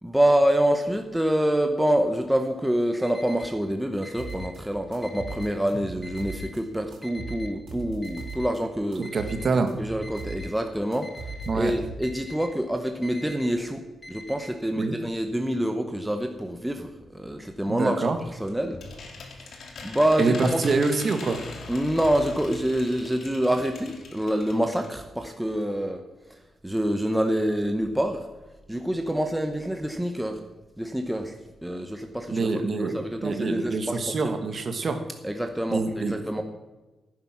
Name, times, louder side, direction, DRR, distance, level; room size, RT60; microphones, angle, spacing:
voice 1, 0.0-9.1 9.8-11.1 11.5-18.8 19.4-19.5 19.8-20.8 21.7-26.0 26.6-28.3 28.7-30.4 30.8-31.3 31.6-34.3 35.2-36.4, right 1 dB, 5° right, 5 dB, 0.9 m, -26 dB
Alarm, 3.0-3.5 4.0-4.5 5.0-5.5 6.0-6.5 7.0-7.5 8.0-8.5 9.0-9.5 10.0-10.5 11.0-11.5 12.0-12.5 13.0-13.5 14.0-14.5, left 1 dB, 20° left, 2.8 m, -43 dB
sound 1, 4.2-4.6 4.9-6.6 6.9-8.6 8.9-10.4 10.7-12.2, right 3 dB, 70° right, 3.8 m, -38 dB
voice 2, 9.0-9.7 11.5-11.7 14.8-14.9 17.7-18.2 20.2-21.4 32.3-32.9 33.2-35.0 35.7-36.4, right 3 dB, 40° right, 7 dB, 1.7 m, -26 dB
sound 2, 18.0-24.9 25.3-25.4 25.6-25.7, left 4 dB, 65° left, 2.4 m, -42 dB
16.0 x 9.6 x 5.9 m, 1.1 s
wide cardioid pair, 160°, 0 cm